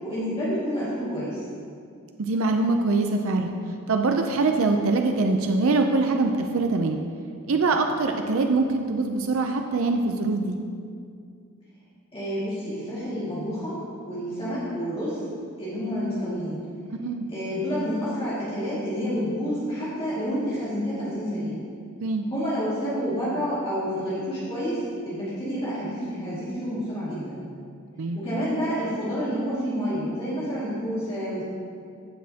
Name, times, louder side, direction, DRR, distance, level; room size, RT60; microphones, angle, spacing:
voice 1, 0.0-1.5 12.1-15.2 15.6-16.6 17.3-21.6 22.3-27.4 28.1-31.4, equal, 25° left, -11 dB, 2.1 m, -29 dB
voice 2, 2.2-3.5 3.9-7.0 7.5-10.6 16.9-17.3 22.0-22.2 28.0-28.2, right 3 dB, 65° right, 4 dB, 0.5 m, -23 dB
15.0 x 6.2 x 2.8 m, 2.3 s
head